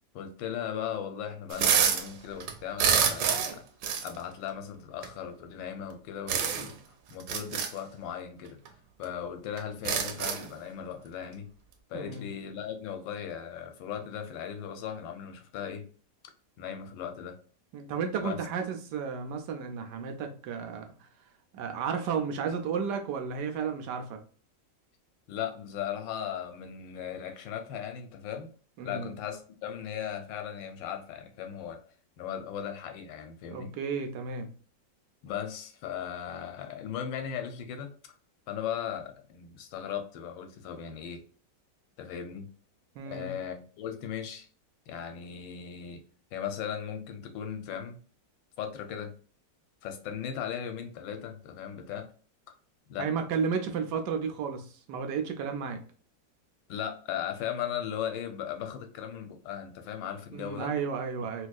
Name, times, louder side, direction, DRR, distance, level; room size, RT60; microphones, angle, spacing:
voice 1, 0.1-3.6 4.0-6.8 7.1-8.6 9.0-11.5 11.9-15.9 16.6-17.4 18.2-18.4 25.3-28.5 28.8-31.8 32.2-33.7 35.2-37.9 38.5-41.2 42.0-42.5 43.1-44.5 44.9-46.0 46.3-48.0 48.6-49.2 49.8-52.1 52.9-53.1 56.7-60.7, left 8 dB, 90° left, 6 dB, 1.4 m, -37 dB
sound 1, 1.5-2.1 2.4-3.6 3.8-4.1 5.0-5.1 6.3-6.7 7.2-7.7 8.6-8.7 9.0-9.1 9.6-10.5, right 7 dB, 90° right, 1.3 m, -27 dB
voice 2, 11.9-12.3 17.7-20.9 21.5-24.2 28.8-29.1 33.5-34.5 43.0-43.4 53.0-55.8 60.3-61.5, right 6 dB, 75° right, 5 dB, 1.1 m, -33 dB
4.3 x 2.3 x 2.3 m, 0.41 s
omnidirectional pair, 2.0 m